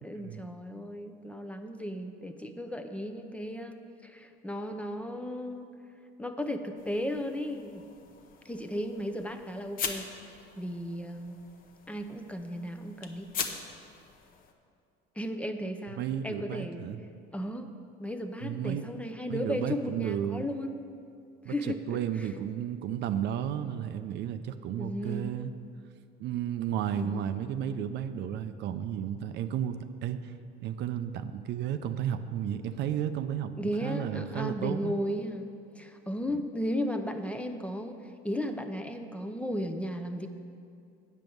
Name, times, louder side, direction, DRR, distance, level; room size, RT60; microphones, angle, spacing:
voice 1, 0.0-3.8 4.0-5.7 6.2-7.8 8.4-10.1 10.6-11.4 11.9-13.3 15.2-16.9 17.3-17.7 18.0-20.8 21.4-22.3 24.8-25.3 26.9-27.3 33.6-35.5 35.7-40.3, equal, 5° left, 6 dB, 0.6 m, -35 dB
sound 1, 6.8-14.5, left 6 dB, 45° left, 0.9 m, -42 dB
voice 2, 16.0-17.0 18.4-18.8 19.3-20.4 21.4-25.5 26.2-30.3 30.6-35.0, right 9 dB, 60° right, 10 dB, 0.5 m, -33 dB
8.4 x 5.3 x 7.7 m, 2.4 s
cardioid pair, 110°, 20 cm